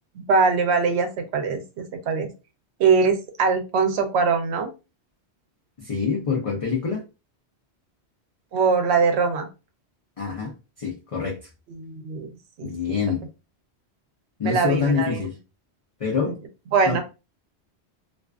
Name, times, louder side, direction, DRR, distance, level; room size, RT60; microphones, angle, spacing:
voice 1, 0.2-2.3 2.8-4.7 8.5-9.5 11.7-12.3 12.6-13.0 14.4-15.2 16.2-16.3 16.7-17.0, right 5 dB, 80° right, 6 dB, 0.9 m, -22 dB
voice 2, 5.8-7.0 10.2-10.5 10.8-11.4 12.6-13.3 14.4-15.3 16.0-16.3 16.9-17.0, left 5 dB, 45° left, 0 dB, 0.5 m, -25 dB
2.4 x 2.3 x 2.3 m, 0.29 s
omnidirectional pair, 1.1 m